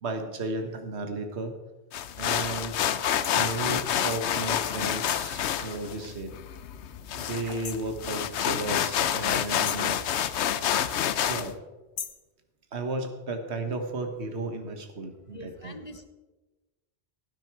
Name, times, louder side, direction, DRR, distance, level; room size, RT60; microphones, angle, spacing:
voice 1, 0.0-1.5 2.2-2.8 3.3-6.3 7.1-10.0 11.3-11.5 12.7-15.8, right 2 dB, 75° right, 6 dB, 1.6 m, -34 dB
sound 1, 1.9-11.5, left 10 dB, 85° left, 0.9 m, -28 dB
sound 2, 3.2-3.4 5.1-5.4 7.6-7.9 9.6-10.0 12.0-12.3, left 6 dB, 50° left, 1.0 m, -38 dB
sound 3, 5.5-5.9 7.4-8.0 9.7-10.1, right 1 dB, 20° right, 1.8 m, -46 dB
voice 2, 15.3-16.1, left 1 dB, 30° left, 8 dB, 1.0 m, -44 dB
17.5 x 9.3 x 4.6 m, 1.2 s
omnidirectional pair, 1.1 m